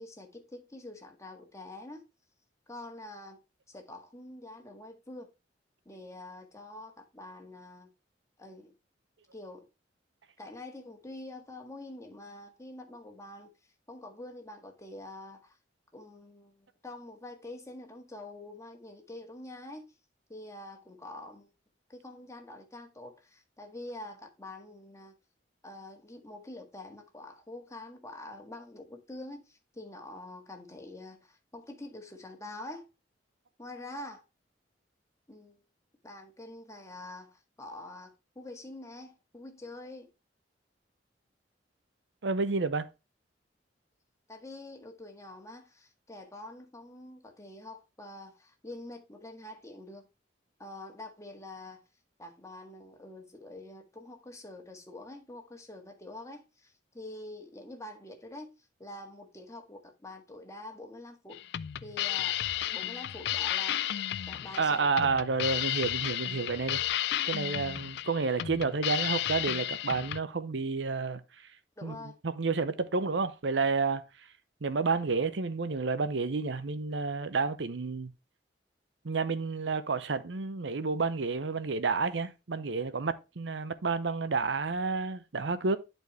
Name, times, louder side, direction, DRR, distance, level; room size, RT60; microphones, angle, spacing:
voice 1, 0.0-2.1 2.7-3.4 3.7-5.3 5.8-7.9 8.4-8.7 9.3-9.7 10.4-13.5 13.9-15.6 15.9-19.9 20.3-21.5 21.9-25.1 25.6-32.9 33.6-34.2 35.3-35.6 36.0-40.1 44.3-50.1 50.6-51.8 52.2-58.5 58.8-61.4 61.8-62.4 62.7-63.8 64.3-64.9 71.8-72.2, left 2 dB, 15° left, 1.6 m, -46 dB
voice 2, 42.2-42.9 64.6-66.8 67.3-71.2 71.8-72.0 72.2-74.3 74.6-78.1 79.0-85.8, right 4 dB, 80° right, 0.7 m, -30 dB
sound 1, 61.3-70.2, left 12 dB, 65° left, 0.4 m, -33 dB
11.0 x 4.5 x 3.2 m
head